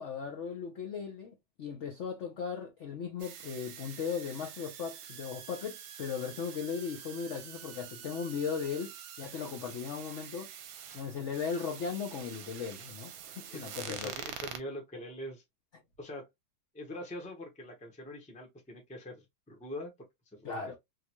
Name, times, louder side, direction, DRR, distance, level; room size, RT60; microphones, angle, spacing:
voice 1, 0.0-10.5 10.9-14.1 20.4-20.8, left 6 dB, 85° left, 0.6 m, -37 dB
sound 1, 3.2-14.6, right 9 dB, 80° right, 1.3 m, -46 dB
voice 2, 13.5-15.4 16.0-16.3 16.7-19.9 20.3-20.8, left 1 dB, 10° left, 0.4 m, -43 dB
3.7 x 2.2 x 2.9 m
omnidirectional pair, 2.1 m